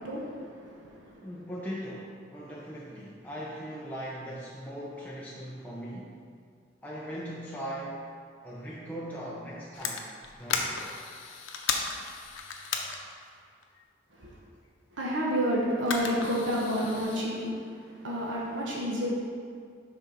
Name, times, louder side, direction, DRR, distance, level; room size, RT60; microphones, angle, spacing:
voice 1, 0.0-1.3 14.1-14.4 14.9-19.1, equal, 75° right, -4 dB, 1.0 m, -30 dB
voice 2, 1.2-6.2 6.8-8.0 8.4-10.1 10.4-10.8, equal, 10° left, -6 dB, 0.6 m, -39 dB
sound 1, 9.7-13.8 15.0-15.3 15.8-17.2, left 5 dB, 90° left, 0.7 m, -35 dB
6.0 x 4.1 x 5.4 m, 2.1 s
head